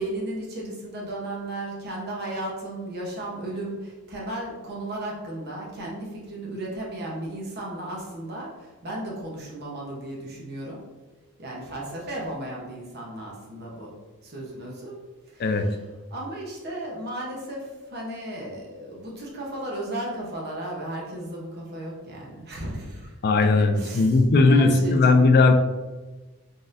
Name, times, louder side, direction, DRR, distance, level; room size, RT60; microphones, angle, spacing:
voice 1, 0.0-10.8 11.4-13.9 14.2-15.0 15.3-15.8 16.1-24.2 24.5-25.0, right 1 dB, 45° right, -3 dB, 0.9 m, -35 dB
voice 2, 23.2-25.5, left 3 dB, 45° left, 7 dB, 0.4 m, -18 dB
3.9 x 3.8 x 2.5 m, 1.2 s
head